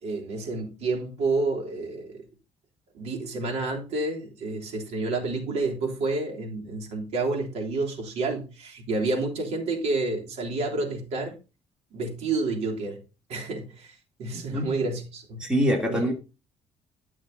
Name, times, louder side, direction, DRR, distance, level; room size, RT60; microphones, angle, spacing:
voice 1, 0.0-2.2 2.9-11.3 11.9-13.0 13.3-15.5 15.9-16.1, right 3 dB, 70° right, 3.3 m, -29 dB
voice 2, 14.3-14.7 15.4-16.1, equal, 5° right, 2.6 m, -24 dB
11.5 x 6.2 x 3.9 m
cardioid pair, 130°, 12 cm